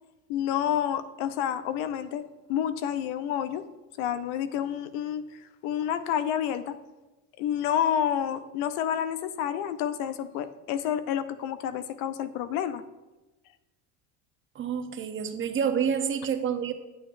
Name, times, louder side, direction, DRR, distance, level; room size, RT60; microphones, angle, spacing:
voice 1, 0.3-3.6 4.0-5.3 5.6-6.8 7.4-12.8, left 9 dB, 85° left, 12 dB, 0.6 m, -29 dB
voice 2, 14.5-16.7, right 7 dB, 35° right, 7 dB, 0.8 m, -28 dB
8.5 x 7.8 x 2.6 m, 1.1 s
cardioid pair, 110°, 33 cm